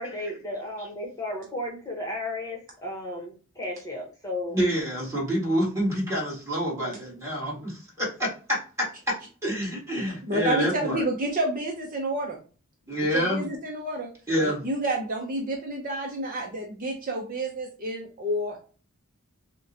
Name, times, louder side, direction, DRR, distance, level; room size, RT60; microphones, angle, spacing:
voice 1, 0.0-4.6 6.8-7.0, left 1 dB, 15° left, -1 dB, 1.1 m, -34 dB
voice 2, 4.5-11.0 12.9-13.5 14.3-14.7, equal, 15° right, -5 dB, 1.9 m, -27 dB
voice 3, 10.3-12.4 13.1-14.1 14.4-18.6, right 1 dB, 40° right, 1 dB, 0.6 m, -29 dB
6.0 x 2.2 x 2.8 m, 0.36 s
head